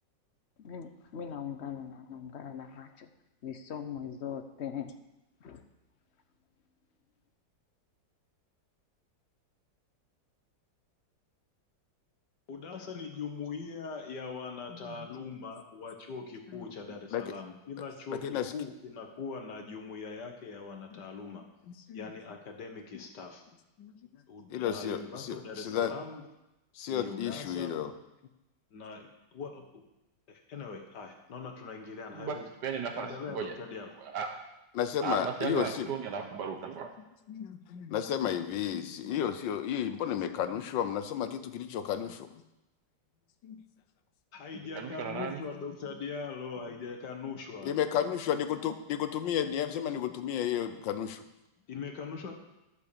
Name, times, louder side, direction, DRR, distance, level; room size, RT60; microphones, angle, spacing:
voice 1, 0.6-3.1 3.4-5.0 5.4-5.6, left 8 dB, 50° left, 8 dB, 0.8 m, -40 dB
voice 2, 12.5-21.4 21.9-23.4 24.3-26.2 26.9-27.7 28.7-29.8 30.3-32.5 32.9-33.9 44.3-47.7 51.7-52.3, left 5 dB, 70° left, 4 dB, 1.9 m, -41 dB
voice 3, 14.7-15.1 16.5-16.7 17.1-17.2 18.1-18.5 20.9-21.0 21.7-22.0 23.8-23.9 24.4-25.9 26.7-27.9 34.7-35.9 37.3-42.4 43.4-43.6 47.6-51.2, left 9 dB, 85° left, 10 dB, 1.5 m, -33 dB
voice 4, 32.1-33.6 34.0-34.4 35.0-36.9 44.5-45.4, right 6 dB, 70° right, 5 dB, 1.5 m, -36 dB
11.5 x 6.9 x 6.8 m, 0.93 s
omnidirectional pair, 1.9 m